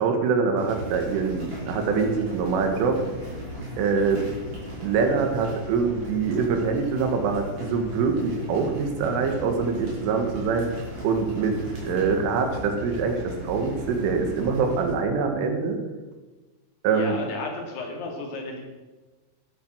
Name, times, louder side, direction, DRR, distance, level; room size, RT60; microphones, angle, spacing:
voice 1, 0.0-3.0 3.8-4.2 4.8-10.7 11.0-15.8 16.8-17.2, right 5 dB, 80° right, 5 dB, 4.1 m, -24 dB
sound 1, 0.6-14.9, equal, 30° right, 5.7 m, -37 dB
voice 2, 16.9-18.6, left 3 dB, 60° left, 1 dB, 3.9 m, -33 dB
12.5 x 11.5 x 6.2 m, 1.2 s
omnidirectional pair, 5.7 m